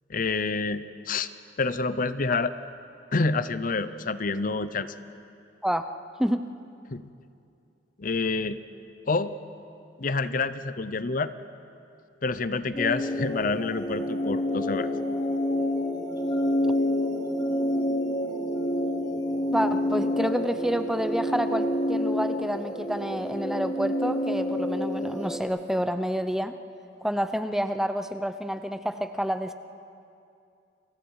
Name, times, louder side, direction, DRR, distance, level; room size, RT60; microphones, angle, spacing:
voice 1, 0.1-1.3 1.6-2.5 3.1-4.9 6.9-7.1 8.0-8.6 9.1-9.4 10.0-11.3 12.2-14.9, left 3 dB, 45° left, 13 dB, 0.7 m, -28 dB
sound 1, 12.7-25.4, left 1 dB, 25° left, 2.9 m, -28 dB
voice 2, 19.5-26.5 27.0-29.5, equal, 5° right, 9 dB, 0.6 m, -28 dB
30.0 x 24.0 x 4.8 m, 2.5 s
head